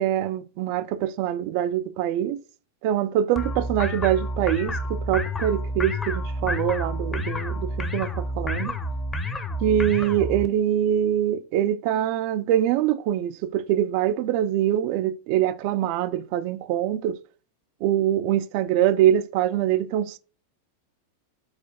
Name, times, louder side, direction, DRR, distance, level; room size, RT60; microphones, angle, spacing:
voice 1, 0.0-2.4 2.8-8.7 9.6-17.2 17.8-20.2, right 11 dB, 45° right, 0.4 m, -24 dB
sound 1, 3.4-10.5, left 1 dB, 15° left, 0.8 m, -29 dB
4.8 x 4.4 x 4.9 m
figure-of-eight pair, 90°, 0 cm